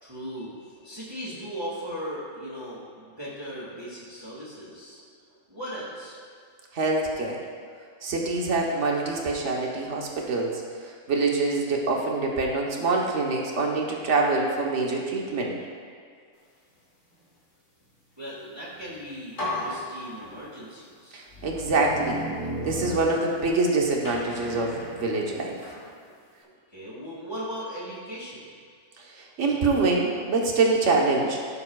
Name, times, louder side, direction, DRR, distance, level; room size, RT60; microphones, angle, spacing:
voice 1, 0.0-6.2 18.2-21.2 26.0-26.2 26.4-28.4, equal, 20° right, -9 dB, 2.2 m, -38 dB
voice 2, 6.7-7.4 8.0-10.6 11.1-15.5 21.1-22.2 22.6-25.6 29.2-31.4, right 3 dB, 60° right, -1 dB, 1.4 m, -25 dB
sound 1, 18.8-18.9 19.4-20.7 21.3-23.6 24.0-25.9, left 1 dB, 65° left, 2.5 m, -35 dB
15.0 x 7.1 x 2.4 m, 2.1 s
omnidirectional pair, 1.4 m